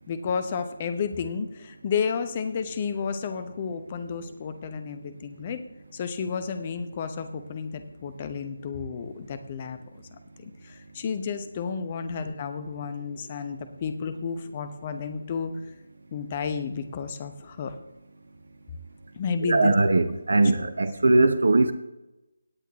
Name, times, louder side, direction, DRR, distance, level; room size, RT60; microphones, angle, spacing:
voice 1, 0.1-5.6 5.9-9.8 10.4-15.6 16.1-17.8 19.2-19.7, left 6 dB, 25° left, 10 dB, 0.8 m, -32 dB
voice 2, 19.4-21.7, right 2 dB, 55° right, 12 dB, 0.7 m, -20 dB
17.5 x 8.2 x 3.0 m, 1.0 s
figure-of-eight pair, 155°, 0 cm